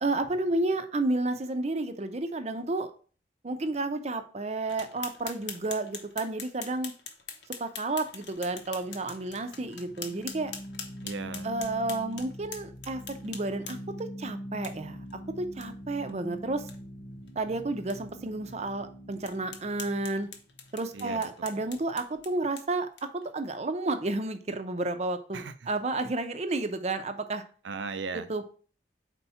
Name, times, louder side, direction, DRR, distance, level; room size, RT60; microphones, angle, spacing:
voice 1, 0.0-2.9 3.4-6.9 7.6-10.5 11.4-13.8 14.2-15.0 15.4-16.6 17.4-20.3 20.7-22.9 23.1-27.4 28.3-28.5, right 2 dB, 35° right, 9 dB, 0.6 m, -31 dB
sound 1, 4.7-14.0 14.6-14.7 15.1-15.2 15.6-15.7 16.0-16.1 16.5-16.8 17.3-17.4 17.9-18.0 18.5-18.6 19.2-23.3, left 6 dB, 70° left, 1.0 m, -44 dB
sound 2, 8.5-21.6, equal, 40° left, 0.5 m, -44 dB
voice 2, 11.0-11.5 20.9-21.7 25.3-25.7 27.6-28.3, right 4 dB, 85° right, 12 dB, 0.6 m, -38 dB
4.5 x 4.2 x 5.6 m, 0.41 s
head